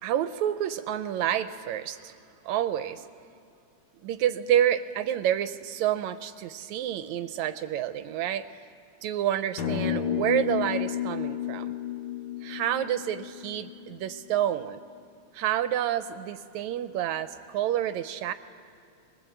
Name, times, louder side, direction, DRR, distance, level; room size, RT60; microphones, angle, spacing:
voice 1, 0.0-2.1 2.5-3.1 4.0-8.5 9.0-11.7 12.4-14.8 15.3-18.3, right 11 dB, 75° right, 11 dB, 1.8 m, -28 dB
sound 1, 9.6-14.1, left 10 dB, 75° left, 2.9 m, -32 dB
23.0 x 20.5 x 8.0 m, 2.6 s
omnidirectional pair, 3.6 m